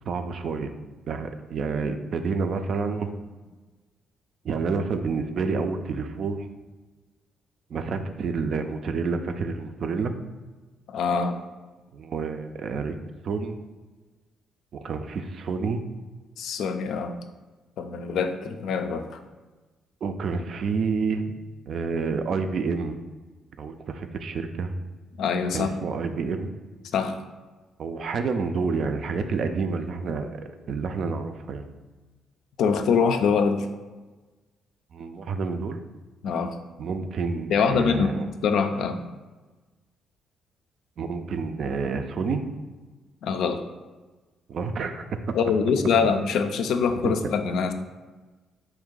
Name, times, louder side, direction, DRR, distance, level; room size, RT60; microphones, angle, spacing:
voice 1, 0.1-0.7 1.1-3.1 4.4-6.5 7.7-10.1 11.9-13.0 13.2-13.6 14.7-15.8 20.0-21.3 21.7-23.0 23.6-24.7 25.5-26.5 27.8-30.4 30.7-31.7 34.9-35.8 36.8-38.3 41.0-42.4 44.5-45.3 47.0-47.2, right 4 dB, 60° right, 8 dB, 0.3 m, -29 dB
voice 2, 10.9-11.4 16.4-17.2 17.8-19.2 25.2-25.7 26.9-27.2 32.6-33.7 36.2-36.6 37.5-39.0 43.2-43.6 45.3-47.7, left 5 dB, 75° left, 7 dB, 0.3 m, -24 dB
3.5 x 2.7 x 3.7 m, 1.3 s
cardioid pair, 90°, 0 cm